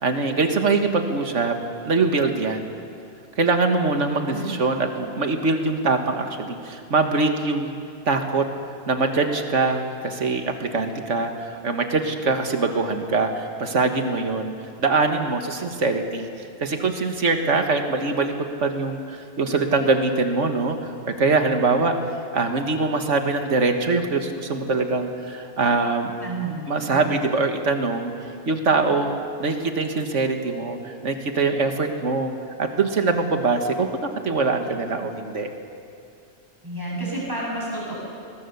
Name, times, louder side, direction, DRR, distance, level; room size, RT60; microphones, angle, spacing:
voice 1, 0.0-1.6 1.8-2.7 3.4-7.8 8.1-8.5 8.9-14.5 14.8-22.0 22.3-26.1 26.7-28.1 28.5-32.3 32.6-33.9 34.2-35.5, right 3 dB, 90° right, 5 dB, 1.9 m, -23 dB
voice 2, 4.0-4.5 26.2-26.6 26.9-27.1 36.6-37.9, right 2 dB, 15° right, -5 dB, 6.9 m, -30 dB
21.5 x 21.0 x 7.0 m, 2.5 s
omnidirectional pair, 1.2 m